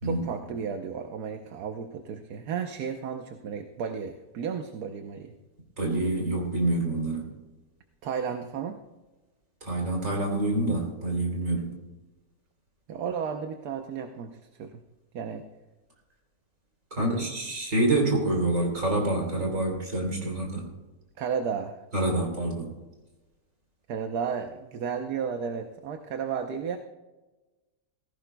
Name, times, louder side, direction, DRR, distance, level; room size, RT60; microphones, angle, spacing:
voice 1, 0.0-5.3 8.0-8.8 12.9-14.8 15.1-15.5 17.0-17.3 21.2-21.8 23.9-26.8, right 6 dB, 75° right, 5 dB, 1.4 m, -33 dB
voice 2, 5.8-7.3 9.6-11.7 16.9-20.6 21.9-22.7, right 2 dB, 50° right, 0 dB, 3.9 m, -27 dB
18.5 x 15.5 x 2.3 m, 1.1 s
omnidirectional pair, 1.7 m